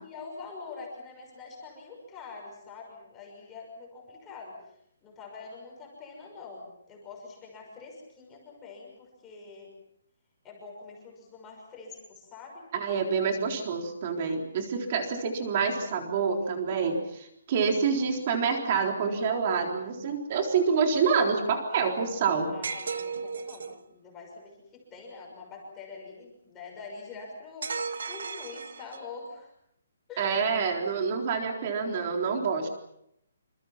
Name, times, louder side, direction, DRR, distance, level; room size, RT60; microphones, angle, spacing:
voice 1, 0.0-4.7 5.0-9.7 10.4-12.6 17.7-18.2 22.4-29.5 30.1-30.5, left 4 dB, 10° left, -2 dB, 6.1 m, -45 dB
voice 2, 12.7-22.5 30.2-32.7, right 5 dB, 25° right, 3 dB, 3.9 m, -27 dB
sound 1, 22.6-23.8 27.6-29.2, right 5 dB, 65° right, 1.7 m, -35 dB
28.0 x 27.0 x 5.8 m, 0.75 s
hypercardioid pair, 180°, 0 cm